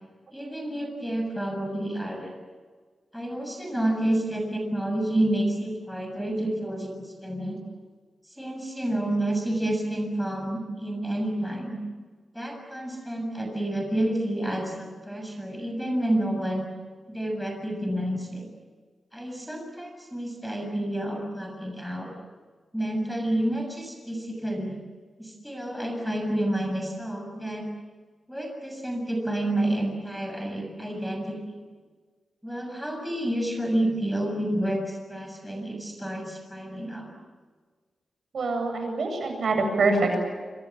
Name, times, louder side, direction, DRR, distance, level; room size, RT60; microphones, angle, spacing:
voice 1, 0.3-2.3 3.1-7.6 8.4-11.8 12.3-16.7 17.1-18.4 19.1-22.1 22.7-24.8 25.2-27.7 28.3-31.4 32.4-37.1, right 1 dB, ahead, 3 dB, 7.1 m, -29 dB
voice 2, 38.3-40.2, right 3 dB, 60° right, 4 dB, 7.9 m, -25 dB
28.0 x 26.5 x 7.5 m, 1.5 s
wide cardioid pair, 140°, 0 cm